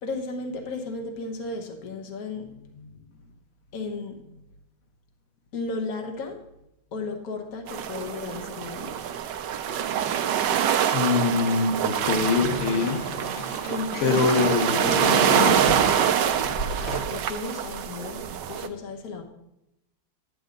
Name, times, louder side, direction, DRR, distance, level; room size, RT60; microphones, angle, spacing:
voice 1, 0.0-3.3 3.7-4.6 5.5-6.4 6.9-9.0 13.7-14.2 14.8-16.6 17.1-19.2, left 3 dB, 50° left, 4 dB, 1.5 m, -35 dB
sound 1, 7.7-18.7, right 9 dB, 70° right, 1.1 m, -25 dB
voice 2, 10.9-13.0 14.0-15.0, left 4 dB, 85° left, 5 dB, 1.9 m, -23 dB
sound 2, 11.7-17.0, left 2 dB, 30° left, 1.1 m, -32 dB
9.9 x 9.8 x 3.9 m, 0.85 s
omnidirectional pair, 2.3 m